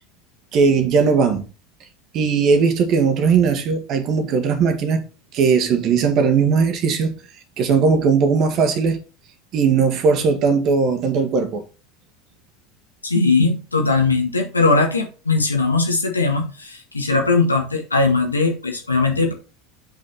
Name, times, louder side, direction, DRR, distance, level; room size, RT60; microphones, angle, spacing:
voice 1, 0.5-1.5 2.1-5.0 5.3-7.1 7.6-9.0 9.5-11.6, right 5 dB, 45° right, 1.7 m, -18 dB
voice 2, 13.0-19.3, left 3 dB, 85° left, 1.6 m, -19 dB
7.1 x 5.6 x 4.2 m
figure-of-eight pair, 75°, 0 cm